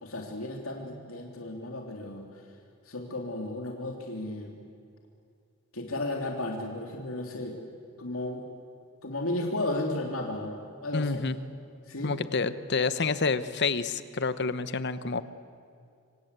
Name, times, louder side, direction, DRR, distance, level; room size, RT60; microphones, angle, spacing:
voice 1, 0.0-2.3 2.9-4.5 5.7-7.6 8.0-8.4 9.0-11.2 11.9-12.1, left 2 dB, 75° left, 2 dB, 3.0 m, -34 dB
voice 2, 10.9-11.4 12.0-15.2, left 4 dB, 55° left, 13 dB, 1.0 m, -28 dB
27.0 x 25.0 x 8.2 m, 2.4 s
head